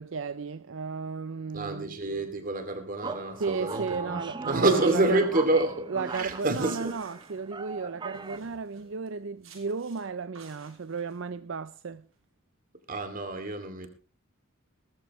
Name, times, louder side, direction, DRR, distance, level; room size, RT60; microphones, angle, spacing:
voice 1, 0.0-2.0 3.4-4.8 5.1-5.2 5.9-12.0, right 5 dB, 65° right, 0.5 m, -34 dB
voice 2, 1.5-7.0 12.9-13.9, right 2 dB, 40° right, 2.6 m, -28 dB
sound 1, 3.0-8.4, right 4 dB, 20° right, 0.7 m, -39 dB
sound 2, 6.1-7.8 8.1-8.9 9.4-10.0 10.3-11.2, right 4 dB, 85° right, 5.9 m, -54 dB
18.5 x 14.0 x 3.1 m
head